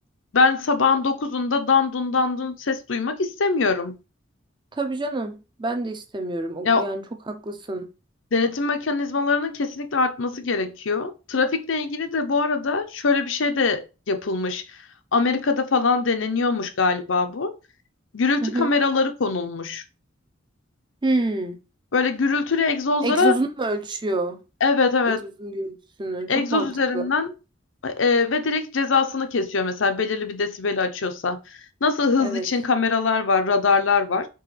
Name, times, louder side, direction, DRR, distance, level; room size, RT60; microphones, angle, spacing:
voice 1, 0.3-3.9 6.6-6.8 8.3-14.6 15.1-17.6 18.1-19.8 21.9-23.3 24.6-25.2 26.3-27.3 27.8-31.4 31.8-34.3, left 4 dB, 80° left, 0.7 m, -22 dB
voice 2, 4.7-7.9 18.4-18.7 21.0-21.6 23.0-24.4 25.1-27.1 32.2-32.5, right 2 dB, 25° right, 0.6 m, -28 dB
4.6 x 3.4 x 3.2 m
head